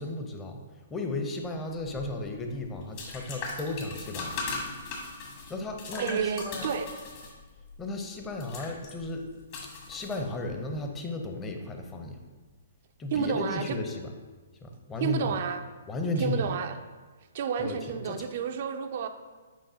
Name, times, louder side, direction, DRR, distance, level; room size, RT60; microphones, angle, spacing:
voice 1, 0.0-5.1 5.5-6.7 7.8-12.2 13.0-14.2 14.6-15.4 15.9-16.5 17.6-18.3, left 2 dB, 15° left, 3 dB, 0.7 m, -35 dB
sound 1, 1.8-10.7, left 3 dB, 45° left, 1.5 m, -39 dB
voice 2, 6.0-6.9 13.1-13.8 15.0-15.6 16.2-16.7 17.3-19.1, right 7 dB, 55° right, 8 dB, 0.4 m, -30 dB
7.5 x 4.9 x 2.8 m, 1.4 s
hypercardioid pair, 130°, 0 cm